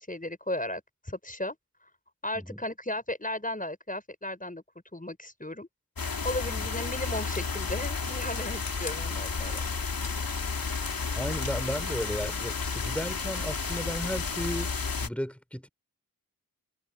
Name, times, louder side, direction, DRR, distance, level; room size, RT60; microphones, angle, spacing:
voice 1, 0.0-1.6 2.2-4.6 4.9-5.7 6.2-9.7, left 1 dB, 20° left, 6.4 m, -35 dB
sound 1, 6.0-15.1, left 4 dB, 70° left, 2.4 m, -32 dB
voice 2, 11.1-14.7 15.0-15.7, equal, 5° left, 5.9 m, -34 dB
cardioid pair, 40°, 36 cm